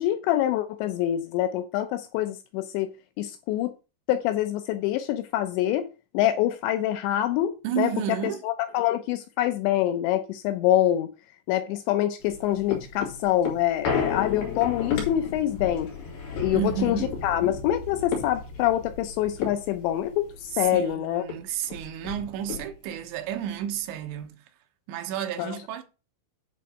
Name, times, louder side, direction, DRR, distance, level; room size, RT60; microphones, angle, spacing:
voice 1, 0.0-3.7 4.1-5.9 6.1-7.9 8.4-11.1 11.5-15.9 16.4-21.2 25.4-25.6, left 12 dB, 80° left, 2.8 m, -25 dB
voice 2, 7.6-8.5 16.5-17.2 20.5-24.5 24.9-25.8, right 10 dB, 80° right, 3.2 m, -31 dB
sound 1, 12.2-20.9 21.3-21.4 21.6-23.0 23.5-23.6, left 6 dB, 60° left, 4.0 m, -33 dB
9.4 x 4.0 x 6.5 m
omnidirectional pair, 5.3 m